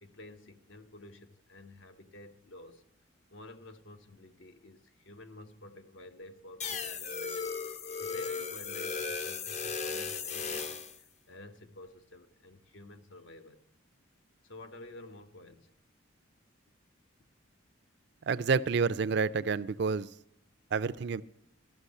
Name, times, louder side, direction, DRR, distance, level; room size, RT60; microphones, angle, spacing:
voice 1, 0.0-2.8 3.3-13.6 14.4-15.7, left 2 dB, 70° left, 8 dB, 1.0 m, -51 dB
sound 1, 6.6-11.0, left 5 dB, 35° left, 0.5 m, -36 dB
voice 2, 18.3-20.1 20.7-21.2, right 5 dB, 55° right, 15 dB, 0.4 m, -29 dB
13.0 x 6.1 x 8.2 m, 0.79 s
head